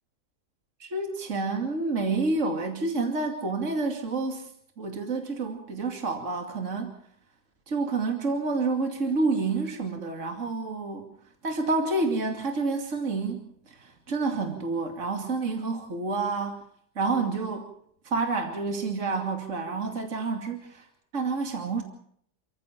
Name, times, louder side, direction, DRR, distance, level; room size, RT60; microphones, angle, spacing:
voice 1, 0.8-4.5 4.8-6.9 7.7-11.1 11.4-16.6 17.0-17.7 18.0-20.9 21.1-21.8, right 3 dB, 50° right, 4 dB, 2.9 m, -29 dB
29.5 x 14.5 x 7.4 m, 0.65 s
omnidirectional pair, 1.7 m